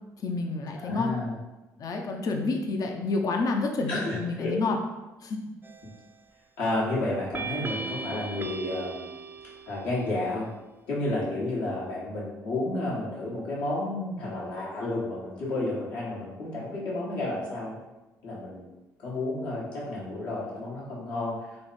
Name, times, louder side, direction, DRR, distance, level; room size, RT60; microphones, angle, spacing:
voice 1, 0.2-1.1 1.8-4.8 5.2-5.4, left 3 dB, 50° left, 3 dB, 0.5 m, -29 dB
voice 2, 0.8-1.4 3.9-4.5 6.6-9.0 9.7-10.5 10.9-17.8 18.2-18.6 19.0-21.4, left 2 dB, 80° left, -6 dB, 1.2 m, -31 dB
sound 1, 5.6-6.1 7.3-10.1, right 4 dB, 25° right, 0.4 m, -37 dB
3.2 x 2.1 x 4.1 m, 1.1 s
supercardioid pair, 60°, 8 cm